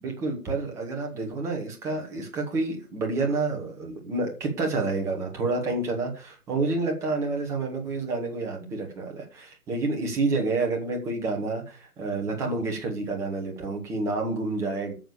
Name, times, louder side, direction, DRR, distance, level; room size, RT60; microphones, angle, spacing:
voice 1, 0.0-14.9, right 3 dB, 5° right, 1.2 m, -29 dB
9.0 x 6.9 x 6.8 m
figure-of-eight pair, 140°, 47 cm